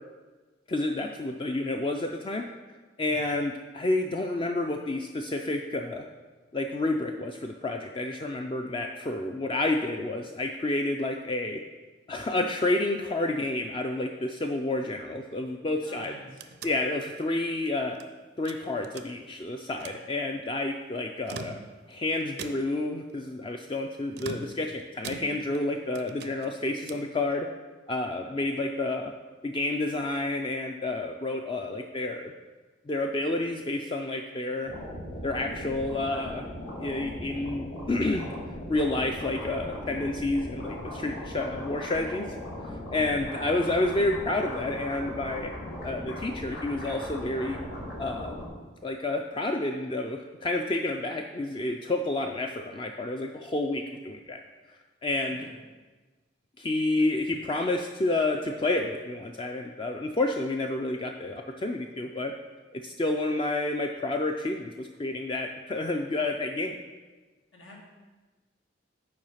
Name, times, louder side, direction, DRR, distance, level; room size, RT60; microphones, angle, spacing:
voice 1, 0.7-2.4 3.0-6.0 6.5-11.6 12.1-16.1 16.6-18.0 18.4-21.6 21.9-27.5 27.9-29.1 29.4-32.3 32.9-34.7 35.2-36.4 36.8-38.3 38.7-42.3 42.6-45.5 45.8-47.6 48.0-48.4 48.8-54.4 55.0-55.4 56.6-62.3 62.7-66.8, left 2 dB, 25° left, 3 dB, 0.3 m, -29 dB
voice 2, 15.8-16.5 43.2-43.4 55.3-55.6 57.0-57.1 67.5-67.8, left 1 dB, 85° left, -2 dB, 1.7 m, -49 dB
sound 1, 15.9-18.1 18.5-19.4 19.7-20.1 21.1-21.9 22.4-22.9 24.1-25.7 25.9-27.2, right 5 dB, 55° right, 0.4 m, -43 dB
sound 2, 34.6-48.5, left 1 dB, 60° left, 2.6 m, -38 dB
7.6 x 4.8 x 5.7 m, 1.3 s
head